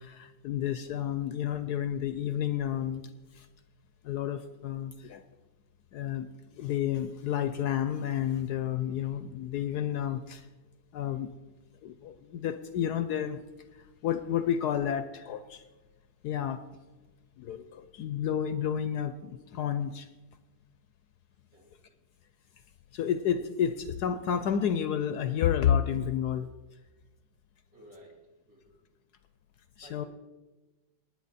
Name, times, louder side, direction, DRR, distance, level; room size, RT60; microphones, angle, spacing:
voice 1, 0.0-3.1 3.4-3.5 4.0-5.2 5.9-6.3 6.5-10.5 10.9-11.3 11.8-13.4 14.0-15.6 16.2-16.6 17.4-20.1 22.9-26.5 29.8-30.0, left 9 dB, 70° left, 11 dB, 1.0 m, -30 dB
voice 2, 27.7-28.2 28.5-28.7 29.8-30.1, equal, 50° right, -2 dB, 3.4 m, -54 dB
19.0 x 9.5 x 4.1 m, 1.2 s
omnidirectional pair, 2.0 m